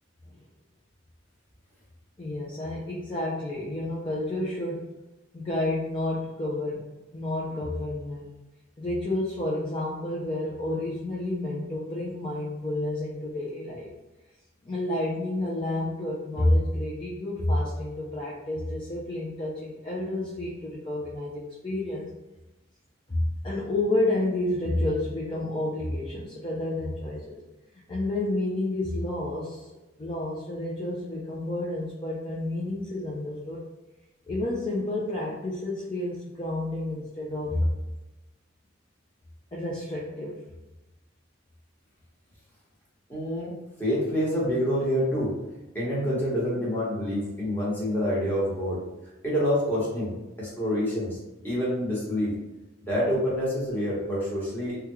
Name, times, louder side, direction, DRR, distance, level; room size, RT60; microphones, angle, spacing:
voice 1, 2.2-4.9 5.3-6.8 7.1-8.3 8.8-13.9 14.6-22.1 23.1-27.4 27.9-29.7 30.0-33.6 34.3-37.7 39.5-40.4, left 1 dB, 25° left, -6 dB, 0.5 m, -30 dB
voice 2, 43.1-43.5 43.8-45.3 45.7-48.8 49.2-51.2 51.4-52.3 52.9-54.8, equal, 10° left, -8 dB, 1.1 m, -27 dB
3.4 x 2.3 x 3.0 m, 1.0 s
head